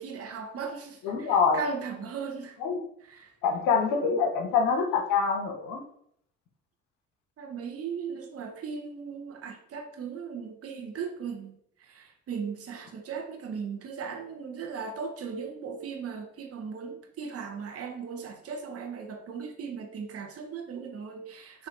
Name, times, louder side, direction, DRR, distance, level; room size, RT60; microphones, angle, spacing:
voice 1, 0.0-2.6 3.1-3.3 7.4-11.5 11.8-21.7, right 5 dB, 40° right, 3 dB, 0.9 m, -37 dB
voice 2, 1.0-1.6 2.6-2.8 3.4-5.8, left 5 dB, 65° left, 3 dB, 0.8 m, -25 dB
5.7 x 2.6 x 2.5 m, 0.69 s
hypercardioid pair, 55°, 35 cm